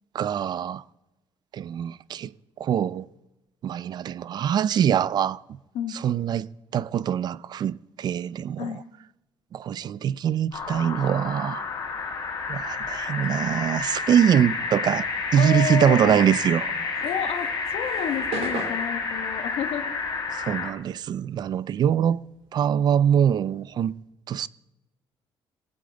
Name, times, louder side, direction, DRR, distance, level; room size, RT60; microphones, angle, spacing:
voice 1, 0.1-0.8 1.5-2.3 2.6-3.1 3.6-5.4 6.0-8.7 9.5-11.7 12.5-16.8 20.3-22.2 22.5-23.9 24.3-24.5, right 9 dB, 45° right, 0.4 m, -23 dB
sound 1, 10.5-20.7, left 4 dB, 45° left, 2.8 m, -30 dB
voice 2, 15.4-16.2 17.0-19.9, left 8 dB, 75° left, 1.3 m, -30 dB
sound 2, 16.9-21.6 21.9-23.9, right 4 dB, 90° right, 2.4 m, -38 dB
20.0 x 7.5 x 4.0 m
cardioid pair, 135°, 10 cm